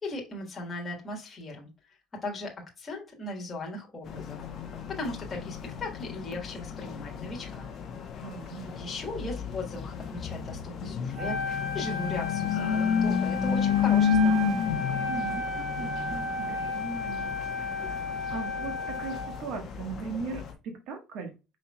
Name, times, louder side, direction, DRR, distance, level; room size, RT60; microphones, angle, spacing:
voice 1, 0.0-1.7 2.2-4.4 4.9-7.7 8.7-14.4, left 2 dB, 15° left, 1.5 m, -38 dB
sound 1, 4.1-20.5, left 6 dB, 35° left, 0.9 m, -31 dB
voice 2, 8.2-8.7 15.1-21.4, right 4 dB, 50° right, 1.3 m, -39 dB
Wind instrument woodwind instrument, 11.1-19.4, left 3 dB, 20° right, 1.5 m, -33 dB
5.4 x 4.2 x 2.3 m
cardioid pair, 180°, 0 cm